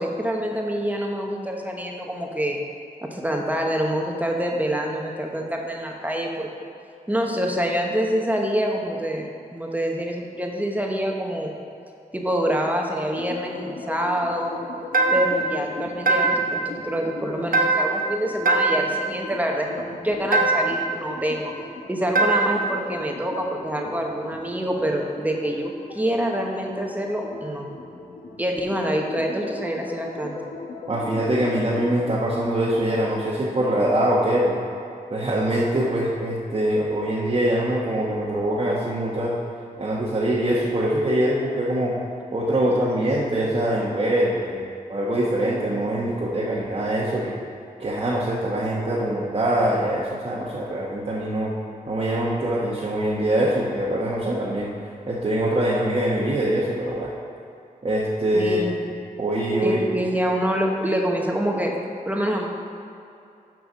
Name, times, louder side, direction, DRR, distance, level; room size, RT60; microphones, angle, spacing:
voice 1, 0.0-2.6 3.1-6.5 7.1-11.5 12.1-14.6 15.1-21.5 21.9-27.7 28.4-30.4 58.3-58.9 59.6-61.7 62.1-62.5, equal, 10° right, 0 dB, 1.0 m, -26 dB
sound 1, 13.1-32.1, left 3 dB, 65° left, 0.9 m, -39 dB
sound 2, 14.9-15.5 16.1-16.6 17.5-18.1 18.5-19.0 20.3-20.9 22.2-22.7, right 3 dB, 75° right, 0.9 m, -21 dB
voice 2, 30.9-34.6 35.1-39.4 39.8-42.0 42.3-47.3 47.8-51.5 51.9-54.7 55.1-57.1 57.8-58.6 59.2-59.8, right 1 dB, 40° right, -6 dB, 1.1 m, -23 dB
6.7 x 6.0 x 6.1 m, 2.6 s
wide cardioid pair, 90°, 15 cm